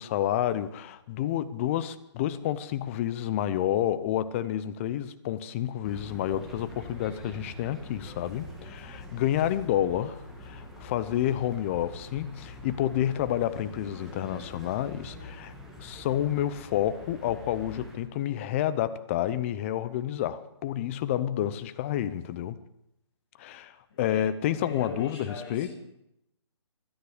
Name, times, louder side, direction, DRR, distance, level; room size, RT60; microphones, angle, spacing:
voice 1, 0.0-15.5 15.8-22.6 23.4-25.7, left 11 dB, 25° left, 14 dB, 0.7 m, -29 dB
sound 1, 5.8-18.0, left 1 dB, ahead, 2.4 m, -44 dB
voice 2, 23.9-24.2 24.6-25.7, left 4 dB, 45° left, -7 dB, 7.4 m, -39 dB
25.0 x 9.8 x 5.0 m, 0.82 s
hypercardioid pair, 150°, 15 cm